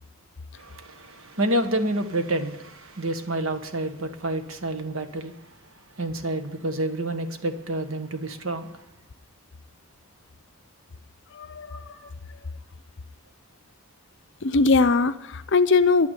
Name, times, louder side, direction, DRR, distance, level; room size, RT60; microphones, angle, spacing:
voice 1, 0.5-5.3 6.0-8.7 11.7-12.1, right 1 dB, 65° right, 8 dB, 1.3 m, -29 dB
voice 2, 11.3-11.9 14.4-16.1, left 4 dB, 55° left, 12 dB, 0.6 m, -21 dB
10.5 x 9.2 x 9.8 m, 0.87 s
head